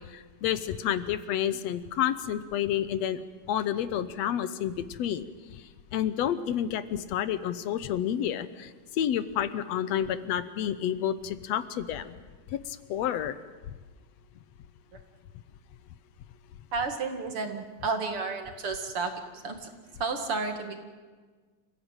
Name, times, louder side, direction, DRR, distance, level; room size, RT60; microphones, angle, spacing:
voice 1, 0.1-3.2 3.5-5.6 5.9-12.2 12.5-13.4, left 10 dB, 70° left, 14 dB, 1.9 m, -30 dB
voice 2, 16.7-19.7 20.0-20.8, right 4 dB, 50° right, 6 dB, 2.6 m, -32 dB
28.5 x 16.0 x 9.0 m, 1.4 s
omnidirectional pair, 3.6 m